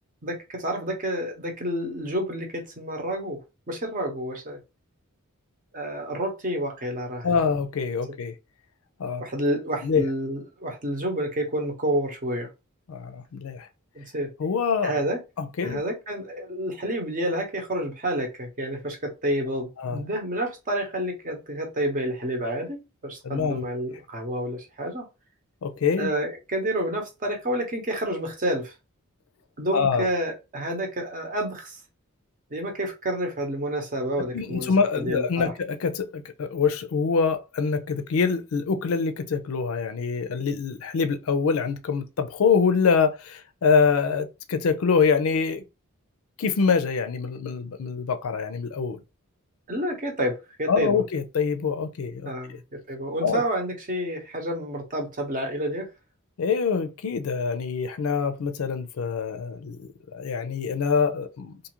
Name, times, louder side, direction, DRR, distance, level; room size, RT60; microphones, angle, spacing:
voice 1, 0.2-3.4 3.7-4.6 5.7-7.3 9.2-12.5 13.9-14.3 14.8-15.2 15.6-25.1 26.0-28.7 29.6-31.8 32.5-35.5 49.7-51.0 52.3-52.6 52.9-55.9, right 1 dB, 40° right, 0.9 m, -29 dB
voice 2, 7.2-8.3 9.0-9.3 9.8-10.0 12.9-13.7 14.4-15.0 15.4-15.8 19.8-20.0 23.2-23.6 25.6-26.1 29.7-30.1 34.3-45.6 46.4-49.0 50.7-52.6 53.2-53.4 56.4-59.9 60.1-61.5, left 5 dB, 70° left, 0.4 m, -25 dB
2.6 x 2.4 x 2.9 m
head